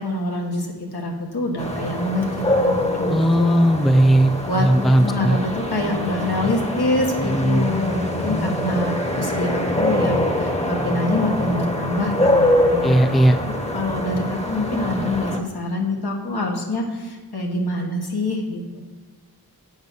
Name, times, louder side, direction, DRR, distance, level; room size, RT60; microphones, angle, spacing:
voice 1, 0.0-3.7 4.5-13.2 13.7-18.8, left 2 dB, 85° left, 0 dB, 1.4 m, -25 dB
sound 1, 1.6-15.4, left 1 dB, 15° left, 0.9 m, -24 dB
voice 2, 3.1-5.4 7.2-7.6 12.8-13.4, right 1 dB, ahead, 9 dB, 0.4 m, -17 dB
8.1 x 4.9 x 5.5 m, 1.3 s
wide cardioid pair, 45°, 37 cm